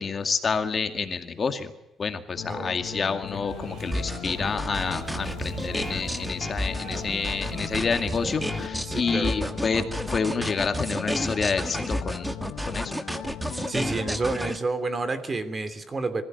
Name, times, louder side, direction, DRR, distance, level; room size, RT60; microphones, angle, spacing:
voice 1, 0.0-1.7 2.0-9.8 10.1-12.3 12.7-12.9, left 5 dB, 40° left, 7 dB, 2.2 m, -28 dB
sound 1, 2.4-14.4, left 12 dB, 80° left, 1.2 m, -39 dB
voice 2, 2.4-3.2 8.8-9.5 13.7-16.2, right 3 dB, 30° right, 10 dB, 3.0 m, -30 dB
sound 2, 3.5-8.7, right 4 dB, 65° right, 7.8 m, -39 dB
sound 3, 3.9-14.6, equal, 5° right, 1.6 m, -31 dB
24.0 x 15.0 x 9.5 m, 0.91 s
cardioid pair, 105°, 0 cm